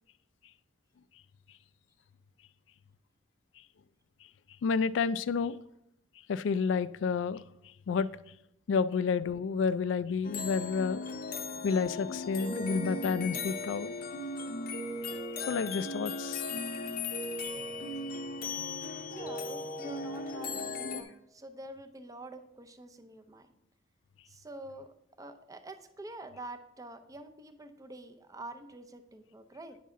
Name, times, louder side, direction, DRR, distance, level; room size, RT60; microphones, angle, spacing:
voice 1, 4.6-5.6 6.3-7.4 7.9-8.1 8.7-11.0 11.6-13.9 15.5-16.4, left 5 dB, 80° left, 0.3 m, -30 dB
sound 1, 10.2-21.0, left 3 dB, 55° left, 0.7 m, -37 dB
voice 2, 19.1-23.5 24.3-29.8, right 2 dB, 20° right, 0.6 m, -47 dB
9.4 x 5.5 x 3.7 m
head